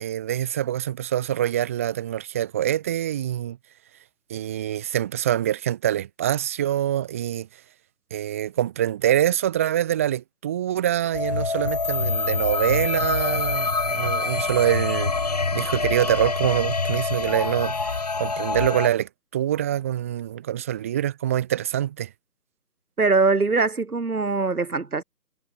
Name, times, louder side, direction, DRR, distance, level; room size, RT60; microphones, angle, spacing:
voice 1, 0.0-3.6 4.3-7.5 8.1-15.1 15.5-17.9 18.2-22.1, right 11 dB, 10° right, 1.9 m, -25 dB
sound 1, 11.1-18.9, left 4 dB, 25° left, 1.3 m, -25 dB
voice 2, 23.0-25.0, right 4 dB, 65° right, 4.7 m, -22 dB
figure-of-eight pair, 170°, 47 cm